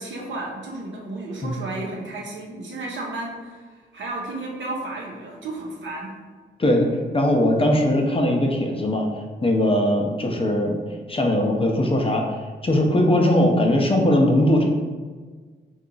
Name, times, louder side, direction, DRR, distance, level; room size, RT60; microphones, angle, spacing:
voice 1, 0.0-6.1, right 2 dB, 75° right, -2 dB, 0.8 m, -33 dB
voice 2, 7.1-9.1 9.4-10.8 11.1-12.2 12.6-14.6, left 1 dB, 30° left, 1 dB, 0.6 m, -20 dB
2.9 x 2.3 x 3.8 m, 1.5 s
cardioid pair, 65°, 19 cm